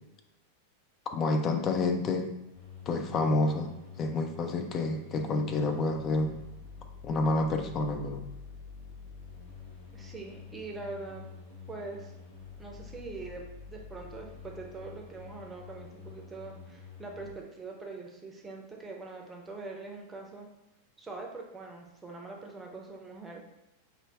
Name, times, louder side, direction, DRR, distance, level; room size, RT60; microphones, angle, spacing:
voice 1, 1.1-2.3 2.9-6.4 7.0-8.3, left 2 dB, 30° left, 5 dB, 0.5 m, -29 dB
sound 1, 2.5-17.4, left 5 dB, 50° left, 0.8 m, -48 dB
voice 2, 9.9-11.3 11.7-12.1 12.6-20.5 21.0-23.4, right 3 dB, 10° right, 0 dB, 0.7 m, -43 dB
5.2 x 2.3 x 3.5 m, 0.90 s
figure-of-eight pair, 90°, 0 cm